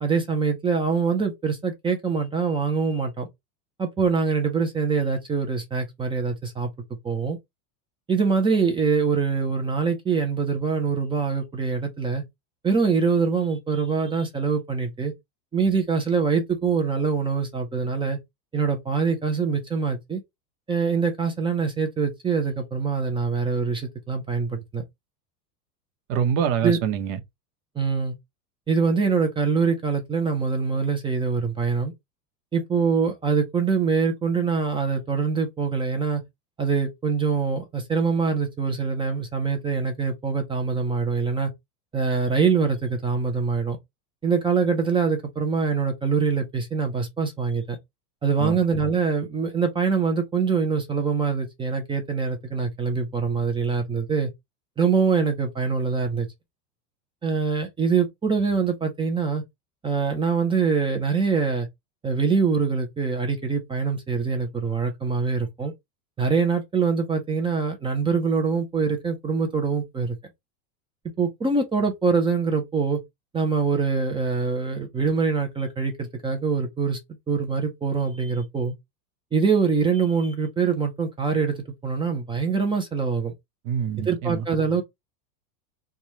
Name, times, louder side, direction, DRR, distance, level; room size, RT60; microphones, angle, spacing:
voice 1, 0.0-3.3 3.8-6.7 7.0-7.4 8.1-12.2 12.6-15.1 15.5-18.2 18.5-20.2 20.7-24.9 26.6-26.8 27.8-28.2 28.7-31.9 32.5-36.2 36.6-41.5 41.9-43.8 44.2-47.8 48.2-54.3 54.8-56.3 57.2-59.4 59.8-61.7 62.0-65.7 66.2-70.2 71.2-73.0 73.3-77.0 77.3-78.7 79.3-83.3 84.1-84.8, right 5 dB, 10° right, 0.4 m, -24 dB
voice 2, 26.1-27.2 48.4-48.6 83.6-84.5, right 8 dB, 55° right, 0.9 m, -25 dB
3.1 x 2.3 x 3.9 m
supercardioid pair, 120°, 49 cm